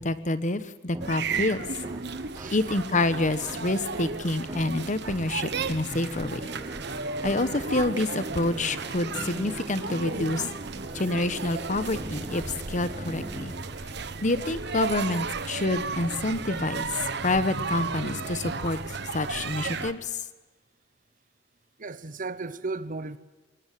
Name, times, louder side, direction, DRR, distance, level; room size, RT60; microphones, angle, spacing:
voice 1, 0.0-1.7 2.5-6.5 7.2-10.5 10.9-13.5 14.2-18.8 19.1-20.2, left 2 dB, 40° left, 1.1 m, -28 dB
sound 1, 0.9-14.6, right 1 dB, 20° right, 0.9 m, -41 dB
sound 2, 1.0-19.9, right 4 dB, 60° right, 1.4 m, -34 dB
voice 2, 2.3-2.7 21.8-23.2, right 3 dB, 45° right, 1.0 m, -35 dB
24.0 x 19.5 x 7.6 m
head